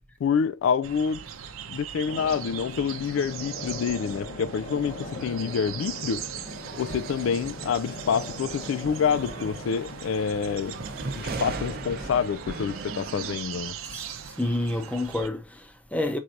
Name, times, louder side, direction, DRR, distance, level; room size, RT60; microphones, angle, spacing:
voice 1, 0.2-1.2 1.7-6.2 6.8-10.8 11.2-13.7, left 6 dB, 65° left, 0.3 m, -27 dB
sound 1, 0.8-15.3, right 8 dB, 90° right, 0.6 m, -40 dB
sound 2, 2.1-12.3, left 1 dB, 45° left, 1.0 m, -40 dB
sound 3, 6.5-13.4, right 4 dB, 50° right, 0.7 m, -39 dB
voice 2, 13.8-16.2, left 1 dB, 5° left, 0.6 m, -29 dB
4.5 x 4.3 x 2.5 m
head